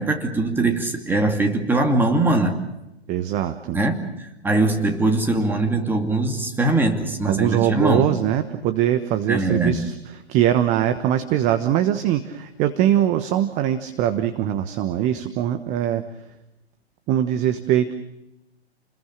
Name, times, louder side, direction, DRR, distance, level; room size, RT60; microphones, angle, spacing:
voice 1, 0.0-2.6 3.7-8.1 9.3-9.8, right 2 dB, 5° right, 4 dB, 2.6 m, -21 dB
voice 2, 3.1-3.8 7.3-9.9 10.3-16.0 17.1-17.9, right 11 dB, 20° right, 10 dB, 1.2 m, -22 dB
30.0 x 21.0 x 6.5 m, 0.91 s
figure-of-eight pair, 120°, 32 cm